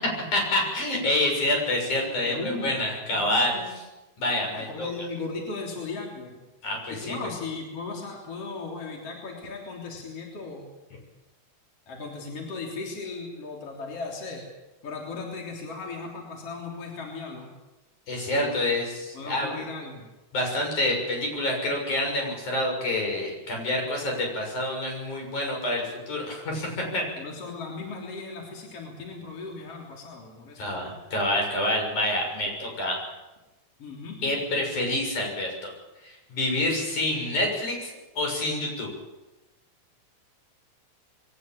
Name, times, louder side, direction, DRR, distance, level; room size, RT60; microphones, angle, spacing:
voice 1, 0.0-3.5 4.2-4.9 6.6-7.2 18.1-19.5 20.3-27.1 30.6-33.0 34.2-35.7 36.0-38.9, left 1 dB, 80° left, 1 dB, 8.1 m, -27 dB
voice 2, 2.0-3.7 4.5-6.4 6.9-10.6 11.9-14.5 14.8-17.5 18.4-18.8 19.1-20.1 27.2-30.7 33.8-34.3, left 3 dB, 50° left, 0 dB, 4.4 m, -37 dB
22.5 x 19.0 x 8.8 m, 1.1 s
omnidirectional pair, 3.4 m